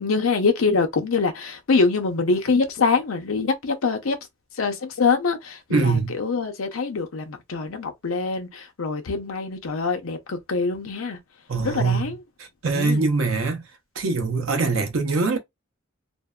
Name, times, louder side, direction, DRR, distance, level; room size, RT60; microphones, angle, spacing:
voice 1, 0.0-4.2 4.6-11.2 11.6-12.2 12.7-13.1, left 4 dB, 90° left, 0.6 m, -24 dB
voice 2, 5.7-6.1 11.5-12.1 12.6-13.6 14.0-15.4, right 4 dB, 75° right, 0.6 m, -23 dB
2.6 x 2.1 x 2.2 m
head